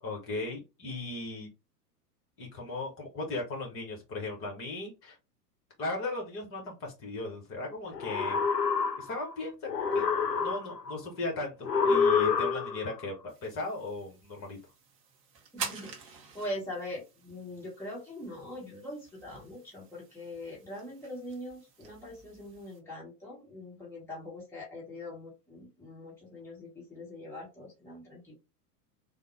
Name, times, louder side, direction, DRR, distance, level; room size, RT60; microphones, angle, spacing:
voice 1, 0.0-1.5 2.4-5.2 5.8-8.4 9.0-10.1 10.4-11.5 11.8-14.6, left 2 dB, 25° left, 0 dB, 1.2 m, -37 dB
sound 1, 7.9-9.3 9.7-10.9 11.6-12.9, left 5 dB, 80° left, 0.6 m, -27 dB
sound 2, 13.3-22.8, right 5 dB, 25° right, 0.7 m, -47 dB
voice 2, 15.5-28.3, left 1 dB, 5° left, -5 dB, 1.0 m, -42 dB
3.5 x 2.2 x 3.2 m, 0.27 s
figure-of-eight pair, 95°, 49 cm